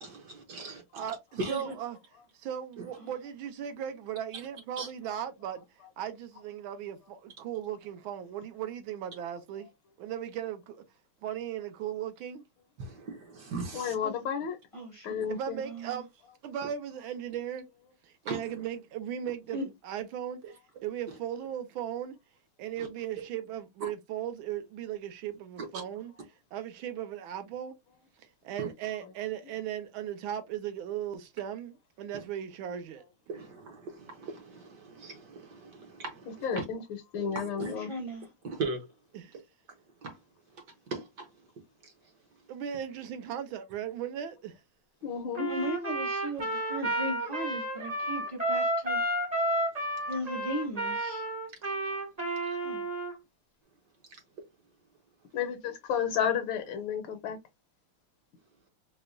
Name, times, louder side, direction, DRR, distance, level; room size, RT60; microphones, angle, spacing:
voice 1, 0.0-1.0 1.4-1.6 2.8-2.9 4.8-4.9 12.8-13.9 18.3-18.4 28.6-28.7 33.3-36.6 37.3-37.7 38.4-38.9 40.0-40.2 40.9-41.3 52.5-52.6, right 3 dB, 60° right, 1.3 m, -38 dB
voice 2, 0.9-2.0 2.4-5.6 6.0-9.7 10.0-10.8 11.2-12.5 15.3-16.1 16.4-17.7 18.0-19.6 19.8-20.4 20.8-22.2 22.6-26.1 26.5-27.8 28.4-33.0 39.1-39.3 42.5-44.5, right 10 dB, 75° right, 1.4 m, -37 dB
voice 3, 13.7-14.6 15.0-15.6 36.4-37.9 45.0-45.5 55.3-57.4, left 8 dB, 75° left, 1.4 m, -32 dB
voice 4, 14.7-15.1 15.6-16.0 19.5-19.7 37.6-38.3 45.4-49.0 50.1-51.3 52.6-52.9, equal, 30° left, 0.6 m, -37 dB
Trumpet, 45.3-53.1, right 1 dB, 40° right, 0.5 m, -31 dB
4.8 x 2.2 x 2.5 m
omnidirectional pair, 2.4 m